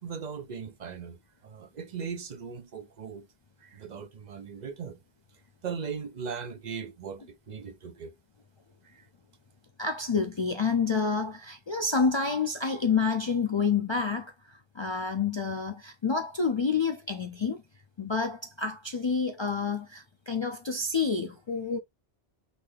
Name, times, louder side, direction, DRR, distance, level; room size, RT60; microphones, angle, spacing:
voice 1, 0.0-3.3 3.6-5.0 5.6-8.1 8.8-9.1, right 6 dB, 50° right, 0.7 m, -39 dB
voice 2, 9.8-17.6 18.0-21.8, left 5 dB, 50° left, 0.3 m, -28 dB
4.0 x 3.3 x 3.1 m
omnidirectional pair, 1.1 m